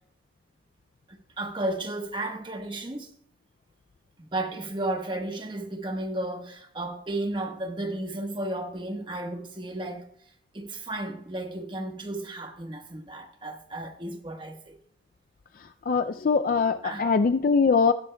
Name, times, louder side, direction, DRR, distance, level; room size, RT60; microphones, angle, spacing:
voice 1, 1.1-3.1 4.3-10.1 10.5-14.7 16.8-17.0, right 1 dB, 25° right, 1.2 m, -33 dB
voice 2, 15.9-17.9, left 5 dB, 45° left, 0.3 m, -22 dB
20.0 x 11.5 x 2.2 m
head